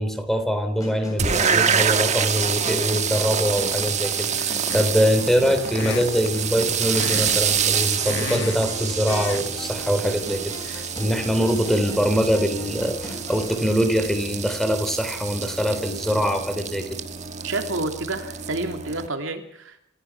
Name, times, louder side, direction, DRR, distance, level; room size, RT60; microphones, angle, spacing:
voice 1, 0.0-16.8, equal, ahead, 8 dB, 3.5 m, -23 dB
sound 1, 0.8-13.7, left 1 dB, 20° left, 7.4 m, -39 dB
sound 2, 1.2-19.1, right 7 dB, 35° right, 1.5 m, -27 dB
sound 3, 4.7-5.1 5.7-6.3 6.9-7.4 7.7-8.7 9.1-9.5 9.8-10.0, left 5 dB, 65° left, 1.2 m, -32 dB
voice 2, 17.4-19.8, right 2 dB, 75° right, 6 dB, 2.9 m, -29 dB
27.5 x 15.5 x 6.0 m, 0.71 s
head